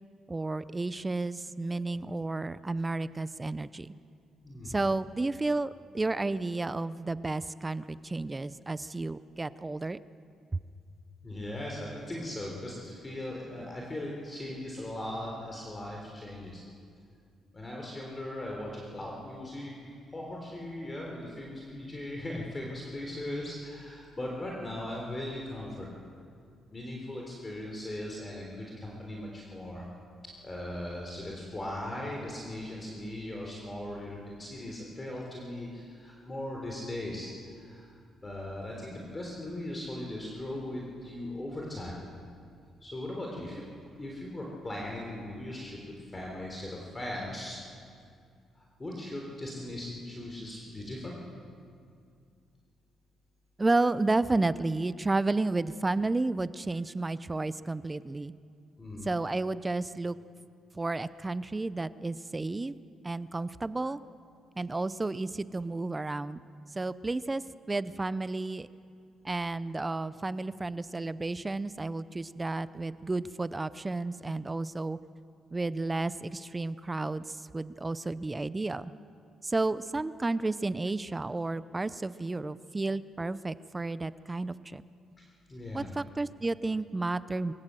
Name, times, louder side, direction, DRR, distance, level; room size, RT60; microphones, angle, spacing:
voice 1, 0.3-3.9 4.7-10.0 53.6-58.3 59.1-60.2 60.7-62.7 63.0-64.0 64.6-66.4 66.8-67.4 67.7-68.7 69.2-75.0 75.5-78.9 79.4-84.8 85.7-87.5, right 2 dB, 20° right, 16 dB, 0.6 m, -32 dB
voice 2, 4.4-4.8 11.2-16.6 17.5-19.7 20.1-25.9 26.7-29.9 30.4-38.0 38.2-42.0 42.8-43.6 44.0-45.8 46.1-47.6 48.6-51.2 58.8-59.1 85.2-85.9, left 1 dB, 25° left, -1 dB, 3.7 m, -39 dB
23.5 x 16.5 x 7.7 m, 2.3 s
cardioid pair, 90°, 0 cm